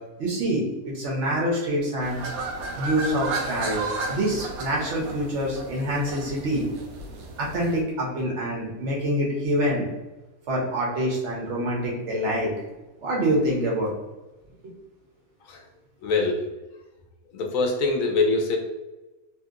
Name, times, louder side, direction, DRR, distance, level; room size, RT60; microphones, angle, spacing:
voice 1, 0.2-2.2 2.7-6.7 7.4-9.9 10.5-12.5 13.0-13.9, equal, 55° right, -3 dB, 1.0 m, -26 dB
sound 1, 2.0-7.8, right 3 dB, 80° right, 1.1 m, -33 dB
voice 2, 16.0-16.4 17.3-18.6, left 3 dB, 75° left, 2 dB, 0.9 m, -23 dB
2.8 x 2.8 x 2.3 m, 1.1 s
omnidirectional pair, 1.5 m